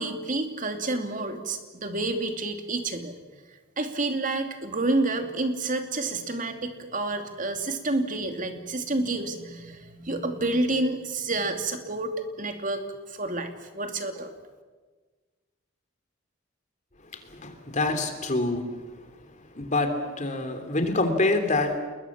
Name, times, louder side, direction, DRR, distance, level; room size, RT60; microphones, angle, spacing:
voice 1, 0.0-3.1 3.8-12.1 12.4-12.8 13.1-14.3, right 2 dB, 40° right, 6 dB, 2.8 m, -29 dB
voice 2, 17.1-18.7 19.2-19.3 19.5-21.8, left 2 dB, 35° left, 7 dB, 3.2 m, -26 dB
30.0 x 21.5 x 7.4 m, 1.4 s
head